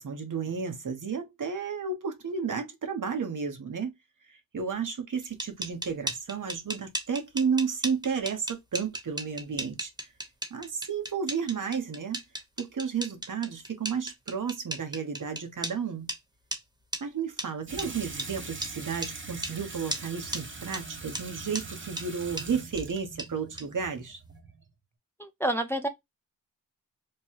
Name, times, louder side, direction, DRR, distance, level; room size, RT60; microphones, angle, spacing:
voice 1, 0.0-3.9 4.3-9.9 10.5-12.2 12.6-16.1 17.0-24.2, right 6 dB, 60° right, 1.0 m, -32 dB
sound 1, 5.2-15.7 16.1-16.2 16.5-16.6 16.9-17.0 17.4-17.5 17.8-17.9 18.2-18.3 18.6-18.7 19.0-19.1 19.4-19.5 19.9-20.0 20.3-20.4 20.7-20.8 21.1-21.2 21.5-21.6 22.0-22.1 22.4-22.5 22.8-22.9 23.2-23.3 23.6-23.7, right 1 dB, 10° right, 1.0 m, -34 dB
Water tap faucet / Sink (filling or washing), 17.6-24.7, right 4 dB, 35° right, 0.9 m, -42 dB
voice 2, 25.2-25.9, right 1 dB, 5° left, 0.4 m, -28 dB
3.3 x 2.3 x 4.2 m
wide cardioid pair, 75°, 34 cm